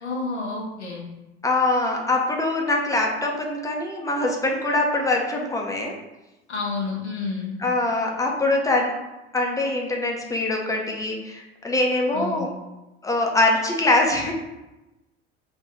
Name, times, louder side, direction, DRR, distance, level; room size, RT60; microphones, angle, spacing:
voice 1, 0.0-1.1 6.5-7.6 12.1-12.5, left 4 dB, 85° left, -2 dB, 0.7 m, -30 dB
voice 2, 1.4-6.0 7.6-8.9 9.3-12.5 13.0-14.3, left 2 dB, 10° left, 0 dB, 0.6 m, -23 dB
3.2 x 2.5 x 3.7 m, 1.0 s
figure-of-eight pair, 65°, 33 cm